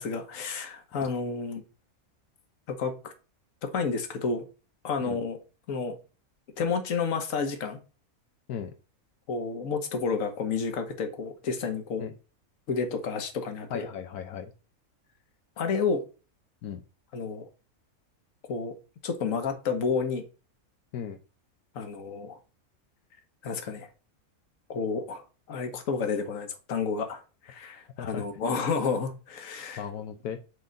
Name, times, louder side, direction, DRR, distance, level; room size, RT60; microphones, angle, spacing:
voice 1, 0.0-1.6 2.7-3.1 3.6-4.5 4.8-5.4 5.7-6.0 6.6-7.8 9.3-12.1 12.7-13.9 15.6-16.0 17.1-17.5 18.5-18.7 19.0-20.2 21.7-22.4 23.4-23.9 24.7-29.8, left 5 dB, 65° left, 6 dB, 1.5 m, -30 dB
voice 2, 13.7-14.5 16.6-16.8 20.9-21.2 28.0-28.2 29.8-30.4, left 8 dB, 85° left, 6 dB, 1.2 m, -36 dB
6.6 x 3.9 x 5.2 m, 0.34 s
omnidirectional pair, 1.6 m